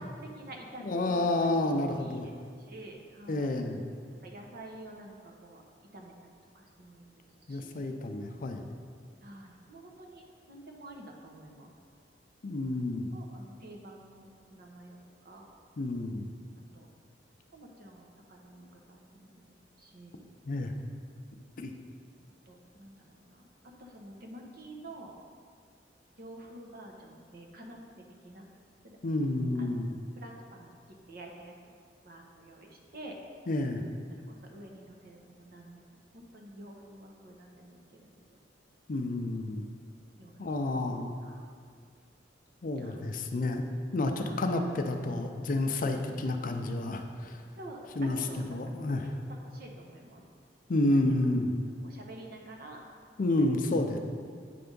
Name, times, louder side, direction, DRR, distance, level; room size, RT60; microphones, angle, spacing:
voice 1, 0.0-1.5 2.0-3.6 4.2-5.6 5.9-7.9 9.2-11.7 12.6-12.8 13.1-15.0 15.2-15.5 16.7-16.9 17.5-19.4 19.8-20.3 22.5-23.4 23.8-25.1 26.2-27.8 28.2-28.5 28.8-29.0 29.6-29.7 30.1-31.8 32.0-33.1 34.1-38.4 40.2-40.8 41.2-41.5 42.8-43.1 44.2-44.8 47.6-50.2 50.7-51.1 51.8-52.8 53.4-53.7, right 1 dB, 55° right, 1 dB, 0.9 m, -49 dB
voice 2, 0.8-2.3 3.3-3.8 7.5-8.7 12.4-13.1 15.8-16.3 20.5-20.7 21.6-21.7 29.0-29.9 33.5-33.8 38.9-39.7 40.4-41.1 42.6-43.7 43.9-47.4 48.0-48.2 48.5-49.1 50.7-51.6 53.2-54.0, left 2 dB, 50° left, 5 dB, 0.5 m, -30 dB
8.5 x 3.4 x 5.3 m, 2.1 s
head